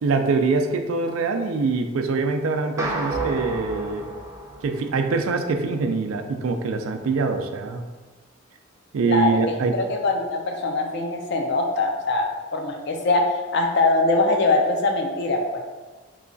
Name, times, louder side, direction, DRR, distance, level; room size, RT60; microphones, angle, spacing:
voice 1, 0.0-4.1 4.6-7.8 8.9-9.8, right 4 dB, 90° right, 6 dB, 0.4 m, -24 dB
sound 1, 2.8-5.3, right 2 dB, 15° right, 0.5 m, -31 dB
voice 2, 9.1-13.2 13.5-15.6, left 2 dB, 55° left, 2 dB, 0.5 m, -22 dB
3.1 x 2.3 x 3.8 m, 1.3 s
head